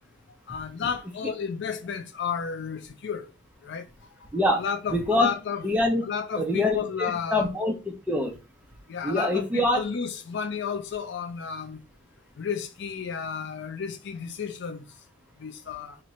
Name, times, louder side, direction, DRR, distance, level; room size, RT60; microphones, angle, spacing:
voice 1, 0.5-3.3 3.6-3.9 4.2-4.3 4.5-5.7 6.0-7.5 8.9-11.8 12.4-14.9 15.4-16.0, left 6 dB, 50° left, 0.4 m, -32 dB
voice 2, 4.9-5.3 5.6-6.0 6.4-6.8 7.3-8.3 9.0-9.8, left 1 dB, 5° right, 0.6 m, -24 dB
2.9 x 2.6 x 4.1 m
head